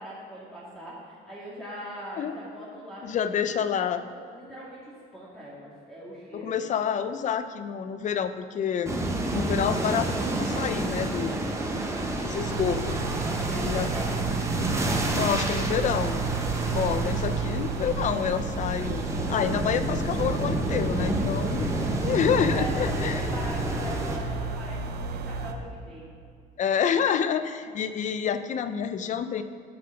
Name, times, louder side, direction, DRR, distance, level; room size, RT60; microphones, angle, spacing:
voice 1, 0.0-3.3 4.1-6.5 13.2-14.3 21.2-21.5 22.5-26.1, right 1 dB, ahead, -8 dB, 1.9 m, -41 dB
voice 2, 3.0-4.0 6.3-9.0 9.3-11.4 12.2-13.0 13.5-13.9 15.1-16.2 16.7-19.0 19.3-21.7 22.0-23.2 26.6-29.4, left 8 dB, 45° left, 11 dB, 0.6 m, -28 dB
sound 1, 8.9-24.2, right 1 dB, 15° right, 1.3 m, -29 dB
sound 2, 12.4-25.5, right 4 dB, 75° right, 0.8 m, -32 dB
8.1 x 6.4 x 5.8 m, 2.3 s
cardioid pair, 110°, 17 cm